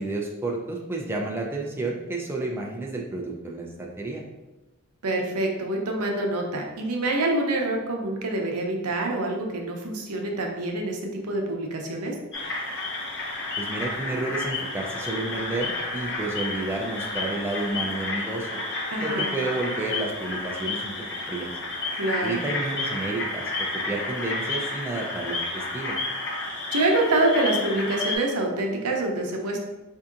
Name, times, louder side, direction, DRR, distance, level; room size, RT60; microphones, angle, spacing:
voice 1, 0.0-4.2 13.6-18.6 19.0-20.9 21.3-21.5 22.2-23.5 23.9-26.0, right 2 dB, 10° right, -1 dB, 0.3 m, -31 dB
voice 2, 5.0-12.1 18.9-19.3 22.0-22.4 26.7-29.6, right 2 dB, 80° right, 2 dB, 0.6 m, -26 dB
sound 1, 12.3-28.2, left 2 dB, 55° left, 0.8 m, -31 dB
4.5 x 2.7 x 2.4 m, 1.1 s
head